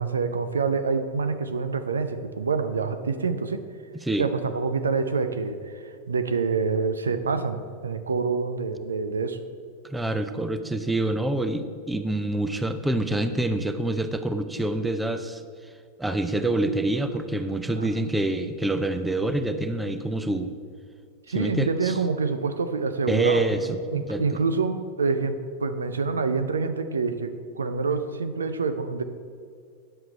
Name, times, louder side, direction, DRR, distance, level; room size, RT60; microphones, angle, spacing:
voice 1, 0.0-3.6 4.2-9.4 17.8-17.9 21.3-29.0, right 4 dB, 70° right, 9 dB, 0.6 m, -27 dB
voice 2, 9.8-15.4 16.0-20.5 21.3-22.0 23.1-24.4, right 2 dB, 5° right, 9 dB, 0.6 m, -26 dB
10.0 x 7.8 x 4.4 m, 2.2 s
figure-of-eight pair, 90°, 0 cm